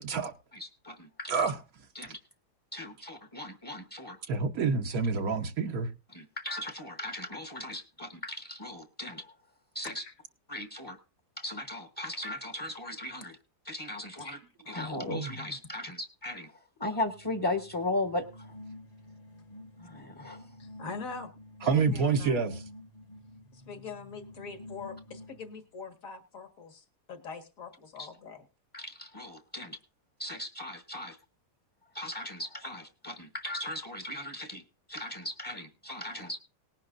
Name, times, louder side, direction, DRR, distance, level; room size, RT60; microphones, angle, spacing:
voice 1, 0.0-0.3 1.3-1.6 4.3-5.9 15.0-15.3 21.6-22.6, right 5 dB, 70° right, 5 dB, 1.4 m, -28 dB
voice 2, 0.5-1.4 1.9-2.2 2.7-4.2 6.1-9.3 9.7-10.0 10.5-11.0 11.4-13.4 13.6-14.4 14.7-18.5 19.8-20.5 28.0-28.1 28.7-29.8 30.2-31.2 31.9-34.6 34.9-36.4, left 1 dB, 20° left, 6 dB, 1.0 m, -37 dB
sound 1, 17.0-25.6, left 1 dB, 35° left, 1.3 m, -49 dB
voice 3, 20.6-21.3 21.6-22.4 23.5-28.4, left 4 dB, 60° left, 5 dB, 2.1 m, -43 dB
19.5 x 10.5 x 2.5 m, 0.30 s
omnidirectional pair, 1.7 m